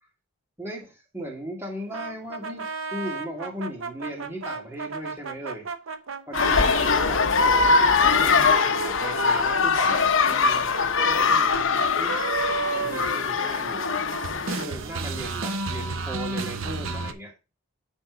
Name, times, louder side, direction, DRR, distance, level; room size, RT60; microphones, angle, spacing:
voice 1, 0.6-5.7 6.3-7.2 8.1-12.2 12.7-14.1 14.6-17.3, right 1 dB, 10° right, 2.1 m, -37 dB
sound 1, 1.9-7.1 7.6-13.9 14.1-17.1, right 3 dB, 65° right, 0.9 m, -33 dB
sound 2, 6.3-14.6, left 4 dB, 60° left, 0.9 m, -22 dB
10.0 x 3.6 x 5.0 m
head